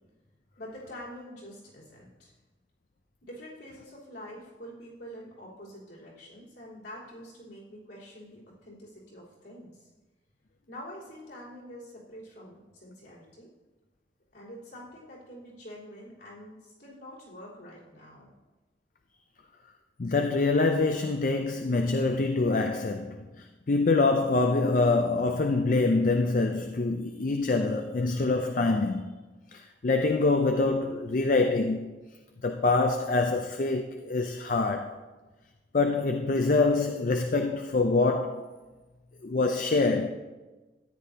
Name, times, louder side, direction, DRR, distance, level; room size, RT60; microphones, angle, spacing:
voice 1, 0.6-2.3 3.2-9.9 10.7-13.5 14.3-18.3, equal, 65° left, 3.7 m, -46 dB
voice 2, 20.0-29.2 29.5-32.0 32.4-35.0 35.7-38.5 39.2-40.1, left 3 dB, 45° left, 0.4 m, -25 dB
13.5 x 10.0 x 2.8 m
head